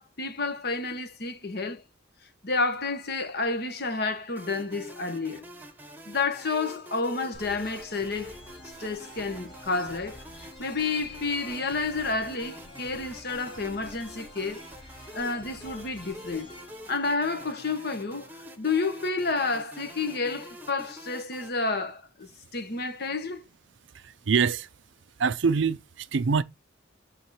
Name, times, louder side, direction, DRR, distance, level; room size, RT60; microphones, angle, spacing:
voice 1, 0.0-1.8 2.4-5.4 6.1-8.4 8.8-10.2 10.6-14.6 15.1-16.5 16.9-18.3 18.6-23.4, left 3 dB, 55° left, 1.3 m, -30 dB
sound 1, 4.4-21.5, equal, 10° right, 1.0 m, -46 dB
sound 2, 7.3-17.9, left 1 dB, 30° left, 4.8 m, -49 dB
voice 2, 24.0-24.7 25.2-26.4, right 5 dB, 70° right, 0.5 m, -25 dB
8.1 x 3.7 x 4.2 m
head